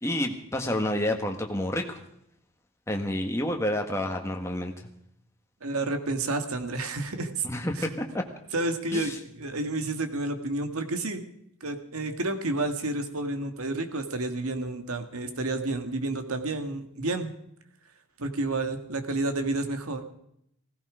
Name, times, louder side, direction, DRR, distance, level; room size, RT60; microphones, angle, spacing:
voice 1, 0.0-2.0 2.9-4.7 7.4-8.2 8.9-9.2, left 1 dB, 15° left, 3 dB, 1.6 m, -29 dB
voice 2, 5.6-7.5 7.8-7.9 8.5-11.3 11.6-17.3 18.2-20.0, right 2 dB, 90° right, 7 dB, 1.8 m, -30 dB
17.0 x 16.0 x 5.1 m, 0.74 s
head